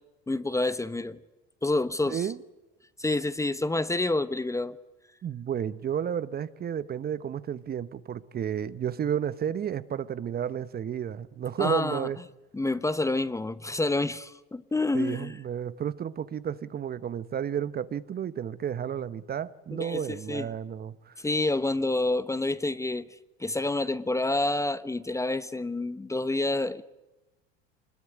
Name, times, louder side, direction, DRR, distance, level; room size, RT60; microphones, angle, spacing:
voice 1, 0.3-1.2 1.6-2.3 3.0-4.8 11.6-12.1 12.5-15.4 19.7-20.5 21.2-23.1 23.4-26.8, left 2 dB, 10° left, 1.0 m, -28 dB
voice 2, 2.1-2.4 5.2-12.2 14.9-21.2, right 9 dB, 30° right, 1.0 m, -32 dB
25.0 x 21.0 x 9.9 m
hypercardioid pair, 80°, 29 cm